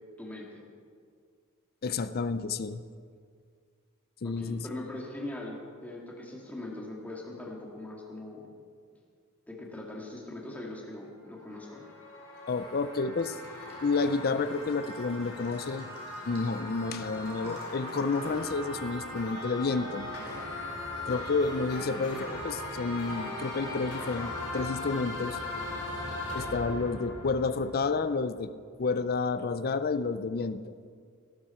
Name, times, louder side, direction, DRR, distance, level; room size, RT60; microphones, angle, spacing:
voice 1, 0.2-0.7 4.2-8.5 9.5-11.8 21.7-21.9, left 1 dB, 5° left, -2 dB, 2.1 m, -41 dB
voice 2, 1.8-2.8 4.2-4.7 12.5-13.4 13.8-15.9 16.3-20.1 21.1-25.4 26.3-28.5 28.8-30.7, left 4 dB, 45° left, 13 dB, 0.5 m, -30 dB
sound 1, 11.3-28.2, left 2 dB, 80° left, 4.8 m, -39 dB
Bathtub (filling or washing) / Trickle dribble, 13.2-24.1, equal, 30° right, 3.6 m, -53 dB
17.5 x 12.5 x 4.4 m, 2.1 s
head